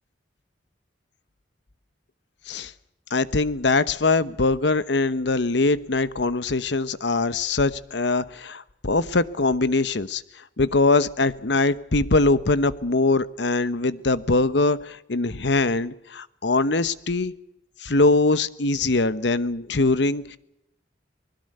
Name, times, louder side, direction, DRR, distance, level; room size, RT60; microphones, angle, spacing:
voice 1, 3.1-10.2 10.6-17.3 17.8-20.4, left 3 dB, 70° left, 15 dB, 1.0 m, -22 dB
24.5 x 21.0 x 6.7 m, 0.85 s
head